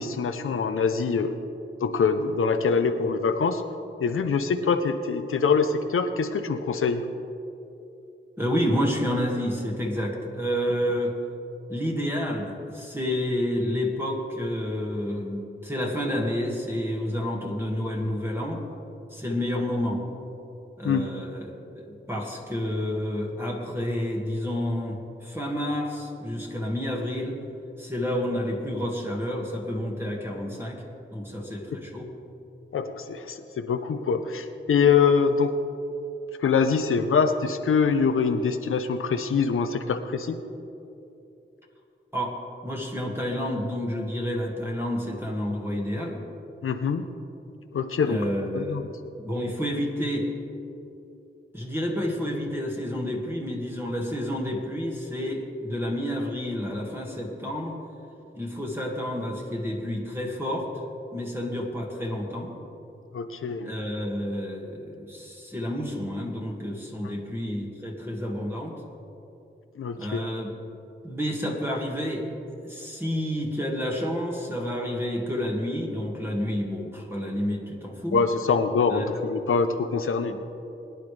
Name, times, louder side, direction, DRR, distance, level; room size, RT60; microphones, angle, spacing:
voice 1, 0.0-1.3 1.8-3.6 4.0-7.0 20.8-21.1 32.7-35.5 36.4-40.4 46.6-47.1 47.7-48.2 48.5-48.9 63.1-63.7 69.8-70.2 78.1-80.3, left 5 dB, 85° left, 7 dB, 0.7 m, -24 dB
voice 2, 8.4-11.1 11.7-18.6 19.1-20.0 20.8-27.4 27.8-30.8 31.1-32.1 42.1-42.4 42.6-46.3 48.1-48.8 49.2-50.3 51.5-57.8 58.3-60.7 61.1-62.5 63.6-68.7 70.0-70.5 71.0-72.3 72.6-78.2 78.9-79.1 80.3-80.4, equal, 10° right, -1 dB, 1.9 m, -29 dB
21.5 x 10.5 x 3.3 m, 2.8 s
wide cardioid pair, 80°, 21 cm